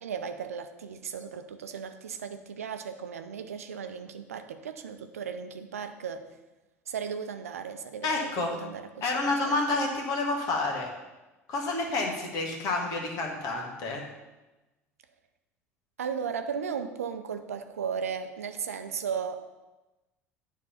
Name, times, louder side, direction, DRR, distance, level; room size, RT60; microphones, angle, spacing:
voice 1, 0.0-6.2 6.9-9.8 16.0-19.5, right 7 dB, 80° right, 8 dB, 0.5 m, -36 dB
voice 2, 8.0-8.6 9.0-10.9 11.5-14.0, left 2 dB, 50° left, 1 dB, 1.6 m, -29 dB
9.6 x 3.6 x 5.7 m, 1.1 s
figure-of-eight pair, 70°, 8 cm